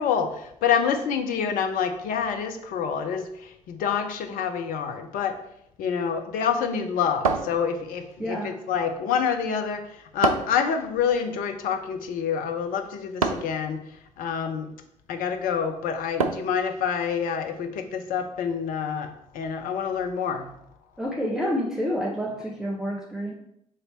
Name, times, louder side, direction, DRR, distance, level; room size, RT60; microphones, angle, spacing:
voice 1, 0.0-5.4 5.8-13.8 14.2-14.7 15.1-20.5, left 7 dB, 55° left, 5 dB, 0.8 m, -27 dB
sound 1, 7.2-8.1 10.2-10.7 13.2-13.6 16.2-16.6, right 4 dB, 85° right, 0.4 m, -26 dB
voice 2, 8.2-8.6 21.0-23.3, equal, 5° right, -3 dB, 1.0 m, -28 dB
7.4 x 3.3 x 4.2 m, 0.76 s
figure-of-eight pair, 50°, 17 cm